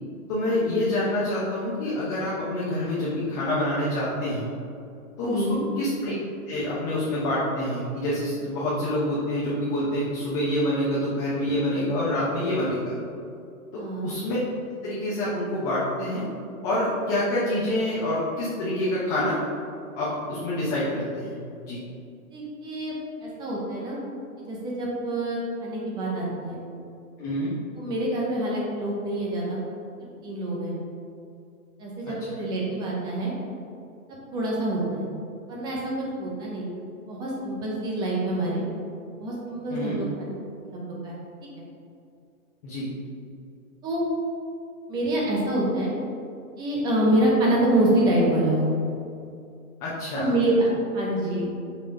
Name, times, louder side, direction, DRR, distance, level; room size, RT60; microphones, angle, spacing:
voice 1, 0.3-4.4 5.2-5.4 5.8-6.1 6.5-12.9 13.7-14.4 14.8-16.2 16.6-19.4 19.9-21.4 21.6-21.8 27.2-27.5 39.7-40.0 42.6-42.9 49.8-50.3, left 1 dB, 25° left, -8 dB, 0.9 m, -27 dB
voice 2, 5.3-5.6 13.7-14.1 22.3-22.9 23.2-24.0 24.5-26.6 27.8-29.6 30.2-30.7 31.8-33.3 34.3-35.0 35.5-35.8 36.2-36.7 37.1-38.6 39.2-40.3 40.7-41.2 43.8-44.0 44.9-45.9 46.6-48.6 50.1-51.5, right 1 dB, 10° right, -4 dB, 0.6 m, -26 dB
5.8 x 3.2 x 5.2 m, 2.5 s
hypercardioid pair, 150°, 43 cm